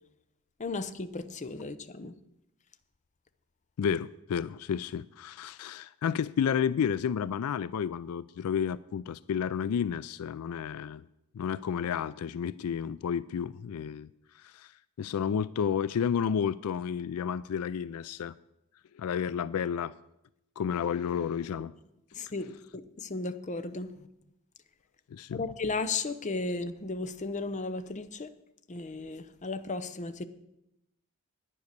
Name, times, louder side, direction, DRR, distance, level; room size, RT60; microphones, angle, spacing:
voice 1, 0.6-2.1 21.6-21.7 22.1-23.9 25.3-28.3 28.7-30.3, left 3 dB, 35° left, 0.7 m, -35 dB
voice 2, 3.8-11.0 11.3-14.1 14.4-14.7 15.0-18.3 19.0-19.9 20.6-21.7 25.1-25.4, left 7 dB, 75° left, 0.4 m, -31 dB
11.0 x 9.4 x 6.6 m
head